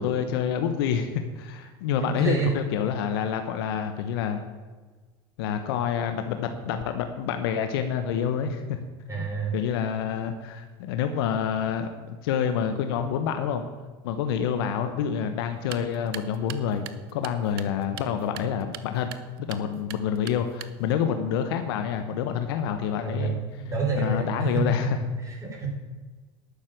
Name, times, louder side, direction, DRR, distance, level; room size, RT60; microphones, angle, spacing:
voice 1, 0.0-4.4 5.4-8.8 9.1-9.3 9.5-13.6 14.0-16.8 17.1-19.1 19.5-23.4 24.0-25.0, left 8 dB, 80° left, 7 dB, 1.1 m, -27 dB
voice 2, 2.0-2.5 6.6-6.8 9.1-9.6 23.0-25.7, right 4 dB, 25° right, -2 dB, 4.5 m, -28 dB
sound 1, 15.5-21.0, right 12 dB, 80° right, 0.8 m, -44 dB
11.5 x 6.5 x 8.9 m, 1.3 s
supercardioid pair, 95°, 13 cm